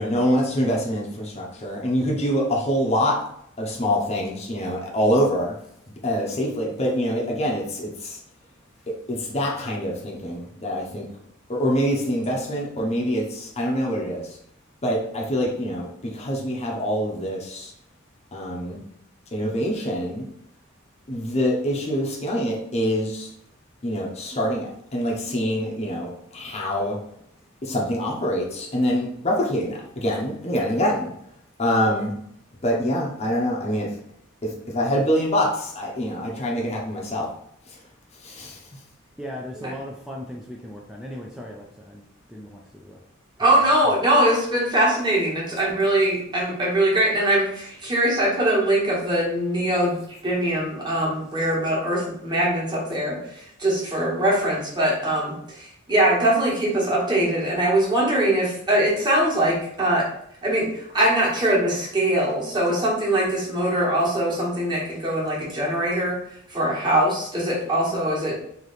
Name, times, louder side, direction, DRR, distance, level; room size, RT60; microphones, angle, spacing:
voice 1, 0.0-3.2 3.6-5.5 6.0-8.2 9.1-11.1 11.5-14.4 14.8-17.7 18.3-18.8 19.3-20.3 21.1-23.3 23.8-27.0 27.6-31.1 31.6-32.2 32.6-33.9 34.4-37.3 38.2-38.6, equal, 30° left, -2 dB, 0.8 m, -25 dB
voice 2, 39.2-42.0 42.3-43.0, equal, 5° right, -2 dB, 0.4 m, -37 dB
voice 3, 43.4-50.0 50.2-60.1 60.4-66.2 66.5-68.4, right 1 dB, 20° right, -5 dB, 1.3 m, -22 dB
3.2 x 2.9 x 4.0 m, 0.69 s
head